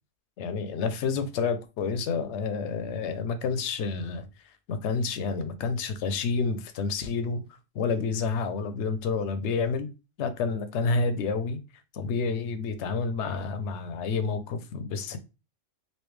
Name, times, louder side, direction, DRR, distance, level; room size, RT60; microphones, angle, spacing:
voice 1, 0.4-4.3 4.7-7.4 7.7-9.9 10.2-11.6 11.9-15.2, left 4 dB, 70° left, 0.8 m, -29 dB
3.2 x 2.8 x 3.1 m
omnidirectional pair, 1.3 m